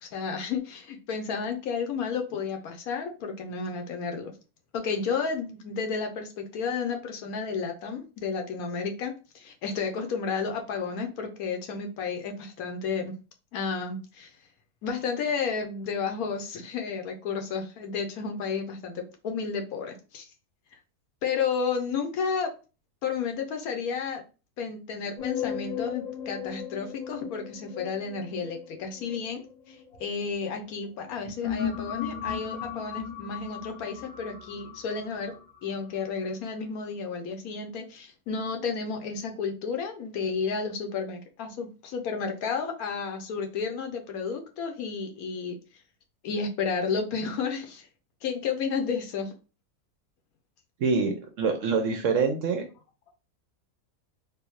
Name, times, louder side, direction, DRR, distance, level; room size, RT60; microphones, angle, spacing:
voice 1, 0.0-4.3 4.7-13.1 13.5-14.3 14.8-20.3 21.2-22.5 23.0-24.2 24.6-29.4 29.7-35.3 35.6-45.6 46.2-47.9 48.2-49.3, left 5 dB, 70° left, 4 dB, 1.1 m, -32 dB
sound 1, 25.2-30.4 31.0-36.0, left 8 dB, 40° left, 0.6 m, -36 dB
voice 2, 50.8-52.6, right 5 dB, 65° right, 5 dB, 0.8 m, -25 dB
3.4 x 2.6 x 3.0 m, 0.33 s
omnidirectional pair, 1.7 m